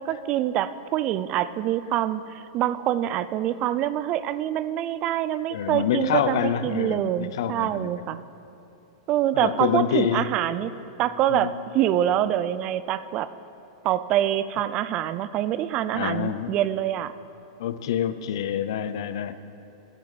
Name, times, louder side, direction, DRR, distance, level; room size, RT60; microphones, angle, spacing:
voice 1, 0.0-8.2 9.1-10.7 11.0-13.3 13.8-17.1, right 12 dB, 35° right, 15 dB, 0.4 m, -25 dB
voice 2, 5.5-8.0 9.3-10.3 11.3-11.5 15.9-16.5 17.6-19.4, left 9 dB, 70° left, 12 dB, 0.6 m, -27 dB
13.5 x 11.5 x 4.1 m, 2.8 s
hypercardioid pair, 135°, 2 cm